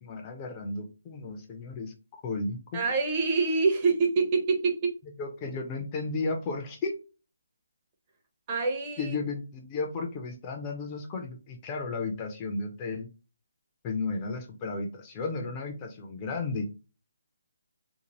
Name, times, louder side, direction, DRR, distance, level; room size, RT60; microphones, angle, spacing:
voice 1, 0.0-2.8 5.2-6.9 9.0-13.1 13.8-16.7, left 3 dB, 25° left, 3 dB, 0.5 m, -34 dB
voice 2, 2.7-5.0 8.5-9.1, right 4 dB, 25° right, 2 dB, 0.7 m, -26 dB
2.6 x 2.5 x 2.9 m, 0.32 s
hypercardioid pair, 160°, 0 cm